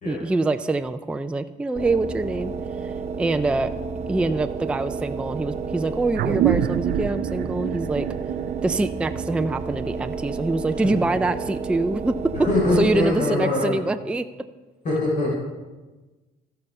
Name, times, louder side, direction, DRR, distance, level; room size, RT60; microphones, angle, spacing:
voice 1, 0.1-2.5 2.8-3.7 4.1-8.1 8.6-12.1 12.8-14.2, right 2 dB, 5° right, 9 dB, 0.4 m, -25 dB
sound 1, 1.8-13.5, right 5 dB, 40° right, 0.9 m, -31 dB
sound 2, 6.1-11.0, right 11 dB, 65° right, 0.4 m, -27 dB
voice 2, 12.3-13.7 14.8-15.4, left 2 dB, 50° left, -5 dB, 3.8 m, -22 dB
14.5 x 5.6 x 5.3 m, 1.2 s
cardioid pair, 110°, 17 cm